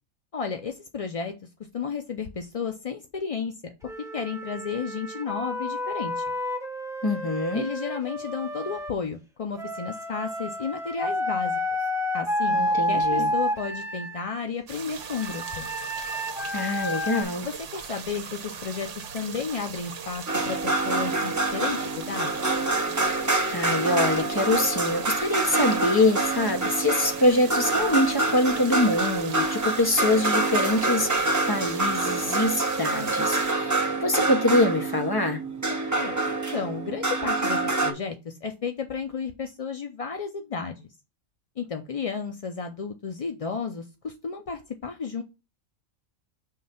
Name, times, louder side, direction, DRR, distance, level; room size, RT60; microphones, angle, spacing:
voice 1, 0.3-1.3 1.7-6.2 7.5-11.9 12.1-12.6 12.9-15.7 17.4-22.6 35.7-40.9 41.6-45.2, left 5 dB, 50° left, 0.4 m, -33 dB
Wind instrument woodwind instrument, 3.8-8.9 9.6-14.2 15.0-17.2, left 1 dB, 5° right, 0.9 m, -30 dB
voice 2, 7.0-7.6 12.5-13.3 16.5-17.5 23.5-35.4, left 2 dB, 20° left, 0.9 m, -24 dB
sound 1, 14.7-33.5, right 7 dB, 70° right, 1.1 m, -39 dB
sound 2, 20.3-37.9, right 2 dB, 20° right, 0.6 m, -26 dB
5.6 x 3.2 x 5.6 m
omnidirectional pair, 1.4 m